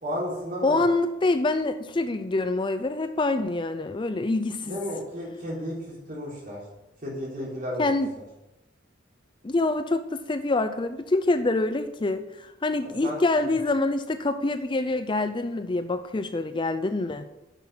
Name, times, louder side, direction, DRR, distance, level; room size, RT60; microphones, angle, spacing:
voice 1, 0.0-0.9 4.6-6.6 7.0-8.0 12.8-13.6, equal, 45° right, -4 dB, 3.7 m, -33 dB
voice 2, 0.6-4.8 7.8-8.1 9.4-17.3, left 2 dB, 25° left, 10 dB, 0.4 m, -26 dB
9.9 x 6.5 x 5.6 m, 0.93 s
head